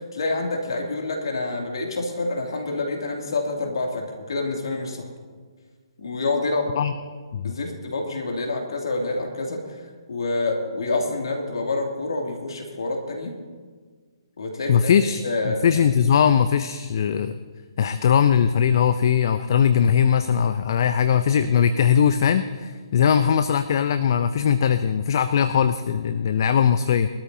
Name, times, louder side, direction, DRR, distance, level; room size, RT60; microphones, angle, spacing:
voice 1, 0.0-5.1 6.0-6.7 7.4-13.3 14.4-14.9 15.2-16.0, left 2 dB, 65° left, 1 dB, 2.5 m, -27 dB
voice 2, 14.7-17.4 17.8-27.1, left 8 dB, 50° left, 11 dB, 0.5 m, -20 dB
21.5 x 13.0 x 2.8 m, 1.5 s
figure-of-eight pair, 135°, 3 cm